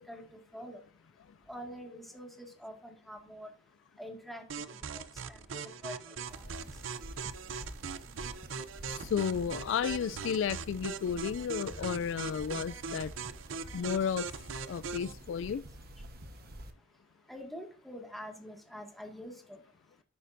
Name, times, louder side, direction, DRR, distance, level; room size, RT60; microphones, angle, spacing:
voice 1, 1.5-3.5 4.0-4.4 4.7-6.4 17.3-19.6, equal, ahead, 1.9 m, -46 dB
sound 1, 4.5-15.1, right 5 dB, 85° right, 0.6 m, -41 dB
sound 2, 6.3-16.7, right 1 dB, 55° right, 1.1 m, -49 dB
voice 2, 9.1-13.1 13.7-14.2 14.7-15.6, left 7 dB, 75° left, 0.3 m, -32 dB
10.0 x 8.5 x 2.6 m
head